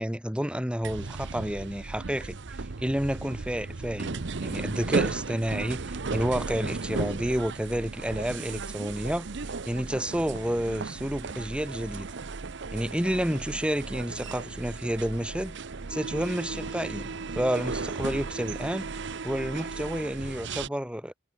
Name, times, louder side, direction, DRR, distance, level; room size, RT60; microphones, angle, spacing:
voice 1, 0.0-2.4 2.8-9.3 9.6-12.1 12.7-15.6 15.9-18.9 19.2-21.1, equal, 5° right, 1.9 m, -30 dB
sound 1, 0.8-20.7, right 4 dB, 60° right, 0.8 m, -35 dB
head